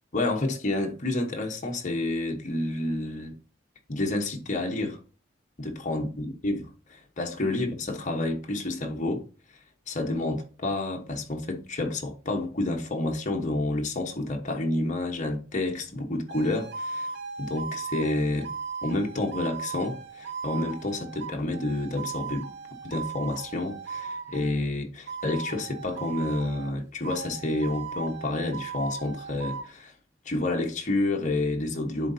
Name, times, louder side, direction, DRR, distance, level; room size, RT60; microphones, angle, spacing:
voice 1, 0.1-3.3 3.9-5.0 5.6-9.2 9.9-17.1 17.4-18.5 18.8-22.5 22.8-29.9 30.2-32.1, left 2 dB, 40° left, 1.1 m, -29 dB
sound 1, 16.3-24.6 25.1-26.8 27.0-29.7, right 5 dB, 60° right, 0.8 m, -37 dB
10.5 x 4.0 x 2.7 m
head